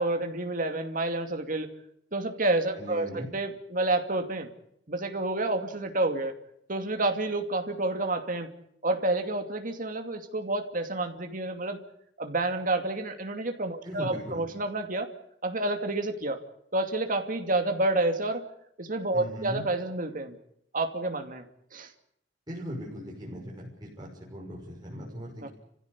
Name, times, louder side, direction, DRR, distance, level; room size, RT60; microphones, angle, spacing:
voice 1, 0.0-1.7 2.1-4.5 4.9-6.3 6.7-8.5 8.8-11.8 12.2-15.1 15.4-16.4 16.7-18.5 18.8-20.3 20.7-21.4 21.7-21.9 25.4-25.5, right 2 dB, 50° right, 5 dB, 2.6 m, -29 dB
voice 2, 2.8-3.3 13.8-14.4 19.1-19.6 22.5-25.5, equal, 25° right, -5 dB, 6.2 m, -39 dB
30.0 x 15.5 x 8.4 m, 0.76 s
head